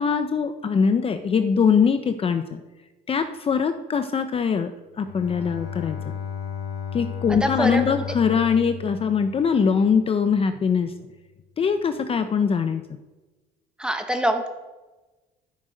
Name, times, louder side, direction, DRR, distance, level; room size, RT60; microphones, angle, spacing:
voice 1, 0.0-2.6 3.1-4.7 5.0-6.1 6.9-10.9 11.6-12.8, left 6 dB, 35° left, 8 dB, 0.6 m, -22 dB
Bowed string instrument, 4.9-9.9, left 7 dB, 80° left, 3.2 m, -34 dB
voice 2, 7.4-8.0 13.8-14.5, equal, 5° right, 6 dB, 1.2 m, -24 dB
13.0 x 6.4 x 5.1 m, 1.2 s
cardioid pair, 110°, 17 cm